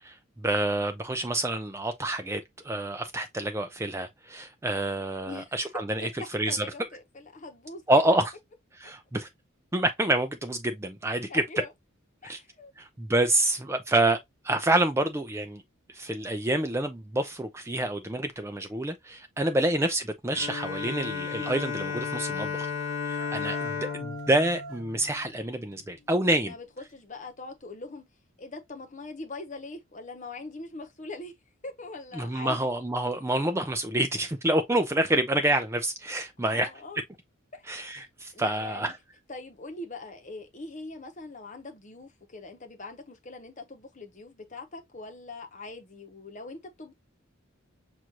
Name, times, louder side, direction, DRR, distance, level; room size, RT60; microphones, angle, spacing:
voice 1, 0.0-6.6 7.9-8.3 8.8-9.3 9.7-11.4 12.2-12.4 12.8-14.2 14.4-15.6 15.9-22.7 23.1-26.5 32.2-36.7 37.7-38.9, right 1 dB, 15° right, 0.4 m, -27 dB
voice 2, 5.2-7.8 11.3-11.7 12.2-12.7 13.2-13.3 23.7-24.0 26.3-28.1 28.4-31.4 31.6-32.7 36.5-37.0 37.5-38.0 38.3-38.9 39.3-46.9, left 3 dB, 35° left, 0.9 m, -42 dB
Bowed string instrument, 20.3-25.8, left 5 dB, 75° left, 1.0 m, -34 dB
sound 1, 22.8-24.9, right 5 dB, 65° right, 0.7 m, -44 dB
6.1 x 2.5 x 2.9 m
head